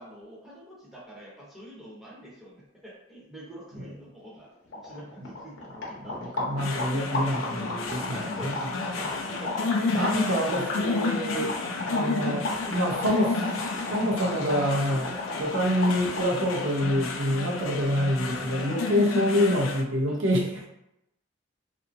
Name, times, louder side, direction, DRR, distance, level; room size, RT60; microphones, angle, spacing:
voice 1, 0.0-6.3 7.6-11.2 12.0-13.1 20.1-20.2, right 1 dB, ahead, -7 dB, 0.7 m, -45 dB
sound 1, 4.4-4.5 4.7-16.4, left 2 dB, 65° left, 0.7 m, -35 dB
voice 2, 6.0-8.5 9.9-11.5 11.9-13.3 13.9-15.1 15.4-20.7, equal, 75° right, -2 dB, 0.7 m, -26 dB
sound 2, 6.6-19.8, left 4 dB, 90° left, 0.4 m, -32 dB
2.7 x 2.5 x 2.5 m, 0.83 s
head